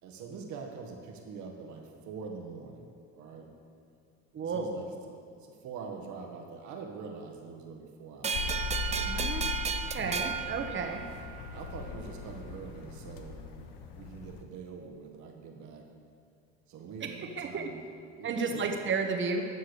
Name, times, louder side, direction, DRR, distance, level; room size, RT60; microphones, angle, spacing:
voice 1, 0.0-3.5 4.4-8.6 10.9-11.0 11.5-13.5 13.9-15.9 16.7-18.8, right 5 dB, 60° right, 3 dB, 1.6 m, -44 dB
voice 2, 4.3-4.8 9.0-9.5 9.9-11.0 17.0-17.1 17.4-17.7 18.2-19.5, right 4 dB, 35° right, 4 dB, 1.3 m, -32 dB
sound 1, 8.2-11.5, right 6 dB, 20° right, 0.4 m, -34 dB
sound 2, 8.3-14.4, left 5 dB, 75° left, 0.9 m, -39 dB
12.5 x 4.7 x 6.7 m, 2.4 s
supercardioid pair, 90°, 33 cm